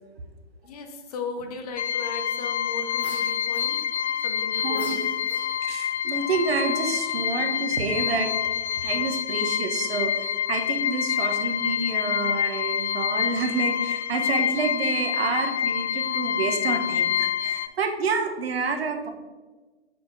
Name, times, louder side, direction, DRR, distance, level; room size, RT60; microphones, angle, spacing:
voice 1, 0.6-3.8 4.2-5.0 5.3-5.4, left 3 dB, 35° left, 5 dB, 0.7 m, -36 dB
sound 1, 1.8-17.7, left 9 dB, 75° left, 0.5 m, -27 dB
sound 2, 3.0-4.1 4.7-5.9, left 1 dB, 5° left, 0.5 m, -45 dB
voice 2, 4.6-5.1 5.6-8.3 8.8-19.1, right 4 dB, 60° right, 5 dB, 1.0 m, -28 dB
6.9 x 6.6 x 2.6 m, 1.3 s
figure-of-eight pair, 125°, 34 cm